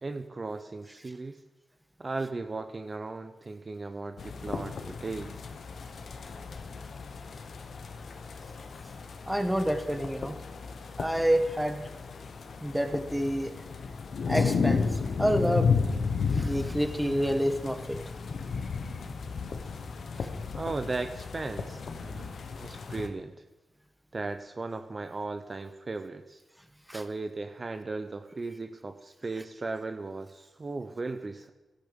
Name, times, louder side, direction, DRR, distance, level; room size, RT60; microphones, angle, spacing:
voice 1, 0.0-1.4 2.0-5.4 20.6-22.3 22.6-23.3 24.1-26.4 26.9-31.5, right 3 dB, 40° right, 8 dB, 0.8 m, -36 dB
sound 1, 4.2-23.1, left 5 dB, 70° left, 1.2 m, -33 dB
voice 2, 9.3-10.3 11.0-11.8 12.6-13.5 14.3-14.8 15.2-15.7 16.3-18.0 19.0-19.1 26.9-27.0, equal, 5° right, 7 dB, 1.5 m, -28 dB
13.0 x 11.5 x 5.3 m, 1.1 s
cardioid pair, 50°, 0 cm